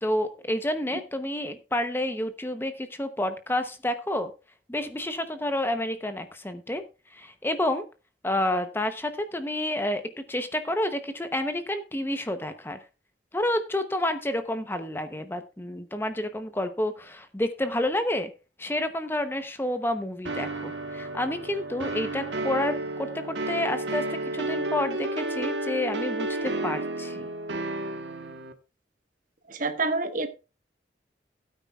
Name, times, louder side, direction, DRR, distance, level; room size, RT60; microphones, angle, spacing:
voice 1, 0.0-4.3 4.7-6.8 7.1-7.8 8.2-10.0 10.3-12.8 13.3-18.3 18.6-27.3, left 1 dB, 10° left, 0.8 m, -29 dB
sound 1, 20.3-28.5, right 2 dB, 80° right, 1.4 m, -32 dB
voice 2, 29.5-30.3, right 3 dB, 45° right, 1.4 m, -27 dB
16.5 x 9.3 x 2.4 m
head